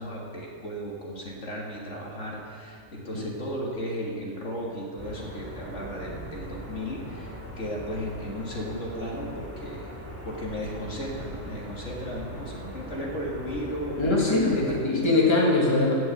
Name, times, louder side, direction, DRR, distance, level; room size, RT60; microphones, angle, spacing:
voice 1, 0.0-9.9 10.2-14.5 14.9-15.5, equal, 65° left, -2 dB, 2.2 m, -35 dB
sound 1, 5.0-14.8, equal, 10° right, 2.5 m, -40 dB
voice 2, 14.0-15.9, left 2 dB, 20° left, -2 dB, 1.9 m, -22 dB
16.0 x 6.2 x 7.9 m, 2.3 s
omnidirectional pair, 1.3 m